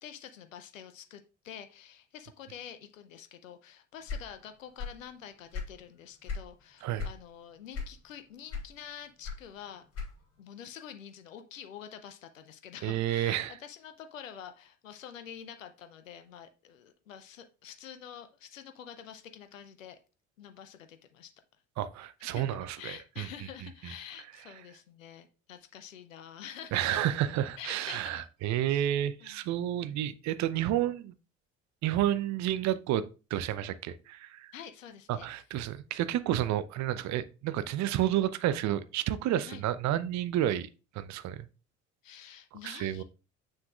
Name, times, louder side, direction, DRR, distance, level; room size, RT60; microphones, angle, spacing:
voice 1, 0.0-9.8 10.4-20.0 20.4-21.3 22.2-27.0 27.6-28.3 28.6-28.9 29.2-29.4 34.5-35.3 39.5-39.6 42.0-43.0, left 9 dB, 80° left, 0.6 m, -47 dB
sound 1, 4.0-5.1 5.4-6.5 7.0-7.2 7.7-8.2 8.5-10.4, left 5 dB, 40° left, 2.9 m, -37 dB
voice 2, 12.8-13.5 21.8-23.3 26.7-31.1 31.8-33.0 33.3-34.5 35.1-40.7 40.9-41.5 42.6-43.0, right 12 dB, 45° right, 0.7 m, -30 dB
7.1 x 6.4 x 2.4 m
figure-of-eight pair, 55°, 38 cm